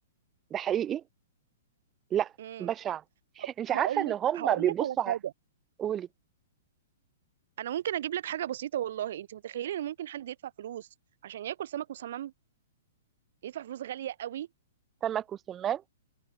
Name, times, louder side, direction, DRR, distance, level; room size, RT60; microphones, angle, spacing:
voice 1, 0.5-1.0 2.1-2.3 2.6-3.0 3.6-5.1 5.8-6.1 15.0-15.8, right 10 dB, 10° right, 3.0 m, -29 dB
voice 2, 2.4-2.7 3.4-5.3 7.6-10.9 11.2-12.3 13.4-14.5, right 11 dB, 45° right, 7.1 m, -35 dB
open air
hypercardioid pair, 180°, 0 cm